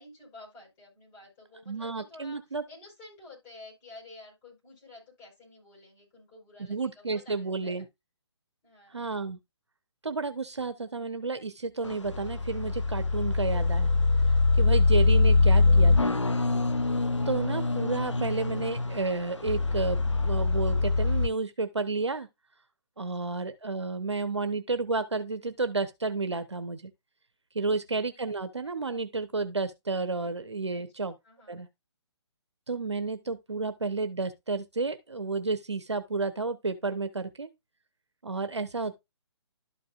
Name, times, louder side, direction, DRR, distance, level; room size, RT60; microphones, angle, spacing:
voice 1, 0.0-2.4 2.7-7.8 8.6-9.1 22.9-23.3 30.7-30.9 31.2-31.6, left 2 dB, 20° left, 4.9 m, -51 dB
voice 2, 1.7-2.6 6.7-7.8 8.9-9.4 10.0-13.9 14.6-16.2 17.3-22.3 23.0-26.8 27.5-31.1 31.5-31.7 32.7-37.5 38.2-38.9, right 3 dB, 70° right, 1.0 m, -31 dB
sound 1, 11.8-21.3, left 3 dB, 85° left, 0.6 m, -24 dB
12.5 x 5.2 x 2.5 m
figure-of-eight pair, 135°, 15 cm